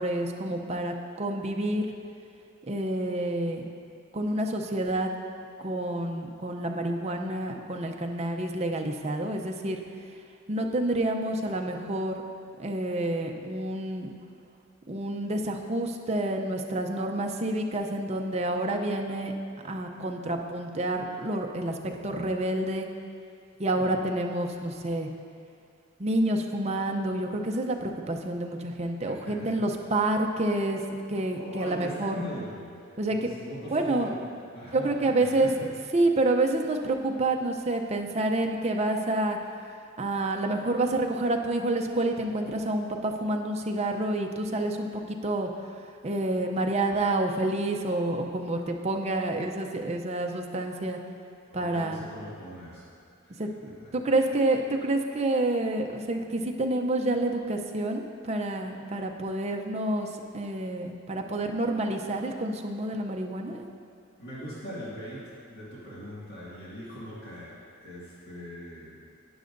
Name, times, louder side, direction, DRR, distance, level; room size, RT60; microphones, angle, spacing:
voice 1, 0.0-1.9 2.7-3.6 4.1-5.1 5.6-9.8 10.5-12.1 12.6-14.1 14.9-19.3 19.6-21.8 22.0-22.9 23.6-25.1 26.0-30.8 31.1-32.2 33.0-33.3 33.7-34.1 34.7-35.5 35.9-39.4 40.0-45.5 46.0-51.0 51.5-52.0 53.4-60.1 60.3-63.7, right 2 dB, 30° right, 2 dB, 0.5 m, -28 dB
voice 2, 29.2-29.7 31.3-34.2 34.5-35.7 51.5-52.9 53.2-53.4 53.8-53.9 64.2-69.0, equal, 50° left, -9 dB, 2.0 m, -41 dB
12.0 x 9.4 x 2.6 m, 2.4 s
head